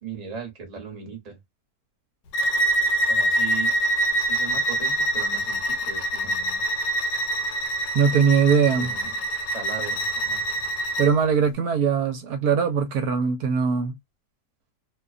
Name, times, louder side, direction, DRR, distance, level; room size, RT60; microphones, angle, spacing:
voice 1, 0.0-1.4 3.1-3.7 4.2-6.6 8.6-9.3 9.5-10.5, right 6 dB, 30° right, 0.8 m, -38 dB
Bowed string instrument, 2.3-11.1, right 1 dB, 75° left, 1.1 m, -25 dB
voice 2, 7.9-8.9 11.0-14.0, right 6 dB, 70° right, 1.0 m, -21 dB
2.7 x 2.2 x 2.4 m
omnidirectional pair, 1.8 m